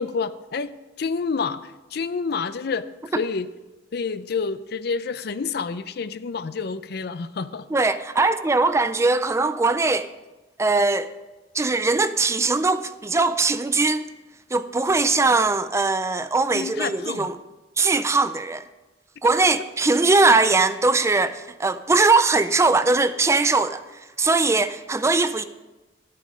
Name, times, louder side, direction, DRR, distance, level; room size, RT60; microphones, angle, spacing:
voice 1, 0.0-3.5 3.9-7.7 8.2-8.3 16.5-17.3, left 5 dB, 60° left, 0.5 m, -29 dB
voice 2, 7.7-10.1 10.6-11.1 11.5-14.0 14.5-17.4 17.8-18.6 19.2-23.8 24.2-25.4, right 3 dB, 15° right, 0.4 m, -20 dB
12.5 x 8.5 x 5.1 m
head